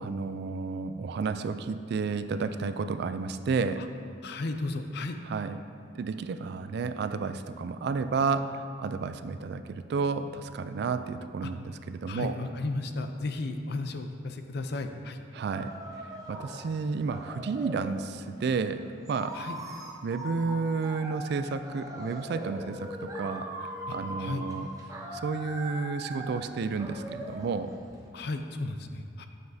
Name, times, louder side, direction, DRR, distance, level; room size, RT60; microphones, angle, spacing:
voice 1, 0.0-3.8 5.3-5.6 5.9-12.4 15.3-15.8 16.3-19.4 20.0-24.7 25.1-27.7, right 4 dB, 55° right, 10 dB, 0.3 m, -31 dB
voice 2, 4.2-5.2 11.4-11.5 12.1-15.2 19.3-19.6 23.9-24.4 28.1-29.3, left 2 dB, 55° left, 7 dB, 0.5 m, -34 dB
sound 1, 15.5-18.0 18.6-28.1, right 1 dB, 20° right, 0.7 m, -41 dB
9.5 x 6.9 x 2.7 m, 2.4 s
head